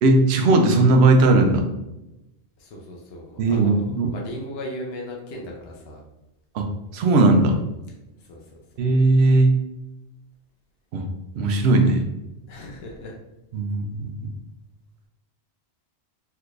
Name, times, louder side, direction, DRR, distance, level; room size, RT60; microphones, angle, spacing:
voice 1, 0.0-1.6 3.4-4.1 6.5-6.6 6.9-7.6 8.8-9.5 10.9-11.1 11.3-12.0 13.5-14.3, right 2 dB, 70° right, 4 dB, 0.8 m, -18 dB
voice 2, 2.6-6.0 7.0-7.1 8.3-8.4 12.5-13.2, left 1 dB, 65° left, -1 dB, 0.8 m, -37 dB
3.4 x 2.9 x 2.4 m, 0.94 s
omnidirectional pair, 1.2 m